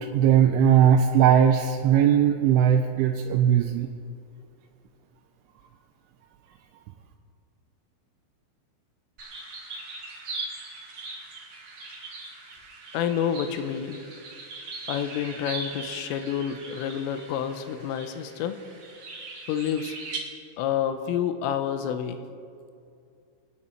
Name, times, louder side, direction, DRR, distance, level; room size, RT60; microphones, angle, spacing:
voice 1, 0.1-3.9, right 9 dB, 80° right, 3 dB, 3.0 m, -19 dB
sound 1, 9.2-20.2, right 3 dB, 55° right, 1.5 m, -40 dB
voice 2, 12.9-14.0 14.9-18.6 19.5-19.9 20.6-22.2, left 9 dB, 85° left, 9 dB, 3.3 m, -28 dB
27.5 x 9.6 x 4.4 m, 2.4 s
omnidirectional pair, 5.9 m